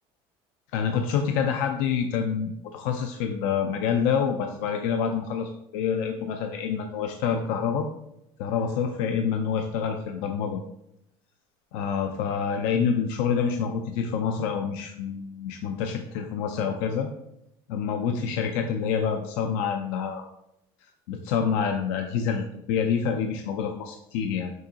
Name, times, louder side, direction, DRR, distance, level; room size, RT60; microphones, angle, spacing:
voice 1, 0.7-7.9 8.4-10.6 11.7-17.1 17.7-20.3 21.1-24.5, left 7 dB, 75° left, 4 dB, 0.5 m, -27 dB
6.2 x 2.8 x 2.8 m, 0.81 s
supercardioid pair, 110°, 13 cm